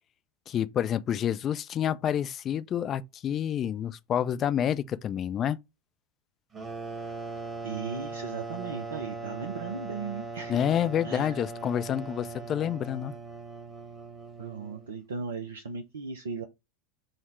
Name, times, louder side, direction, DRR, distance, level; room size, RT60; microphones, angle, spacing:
voice 1, 0.5-5.6 10.5-13.1, left 9 dB, 35° left, 0.3 m, -28 dB
sound 1, 6.5-15.0, right 3 dB, 20° right, 1.2 m, -39 dB
voice 2, 7.6-11.4 14.4-16.5, right 5 dB, 75° right, 0.4 m, -37 dB
3.8 x 2.1 x 4.4 m
figure-of-eight pair, 85°, 0 cm